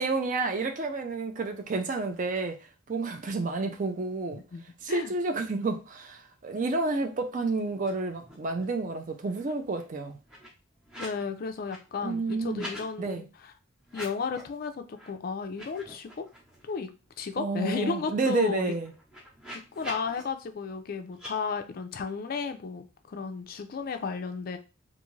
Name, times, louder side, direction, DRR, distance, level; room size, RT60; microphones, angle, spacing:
voice 1, 0.0-2.6 2.9-4.4 4.8-10.2 12.0-12.7 13.0-13.2 17.4-18.9, right 3 dB, 35° right, 5 dB, 0.4 m, -30 dB
voice 2, 4.3-5.1 11.0-13.5 13.9-16.3 16.6-16.9 17.2-18.7 19.5-24.6, left 5 dB, 45° left, 8 dB, 0.3 m, -34 dB
sound 1, 7.7-8.8 9.2-11.2 11.5-12.9 13.8-14.5 14.9-15.1 15.4-16.8 17.2-17.3 17.5-20.2 21.1-21.3, equal, 5° right, 0.8 m, -46 dB
2.5 x 2.4 x 3.1 m, 0.31 s
head